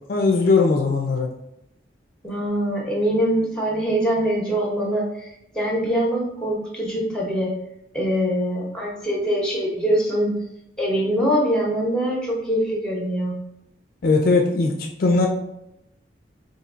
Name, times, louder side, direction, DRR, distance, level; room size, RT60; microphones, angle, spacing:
voice 1, 0.1-1.3 14.0-15.3, left 3 dB, 50° left, 2 dB, 0.4 m, -19 dB
voice 2, 2.2-7.5 7.9-10.3 10.8-13.3, equal, 5° left, -2 dB, 0.8 m, -23 dB
4.3 x 2.6 x 2.5 m, 0.82 s
head